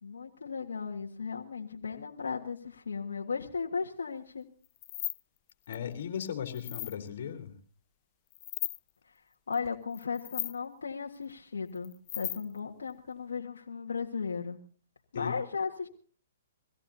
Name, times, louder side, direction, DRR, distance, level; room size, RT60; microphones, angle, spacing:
voice 1, 0.0-4.4 9.5-14.6 15.1-15.9, left 5 dB, 85° left, 0 dB, 1.6 m, -36 dB
sound 1, 4.6-5.2 5.5-5.8 6.2-6.9 8.3-8.8 9.5-9.7 9.9-10.6 11.7-12.6, left 18 dB, 35° left, 0.6 m, -37 dB
voice 2, 5.7-7.6 15.1-15.4, left 8 dB, 60° left, 4 dB, 3.6 m, -37 dB
24.0 x 17.0 x 2.8 m, 0.44 s
hypercardioid pair, 140°, 0 cm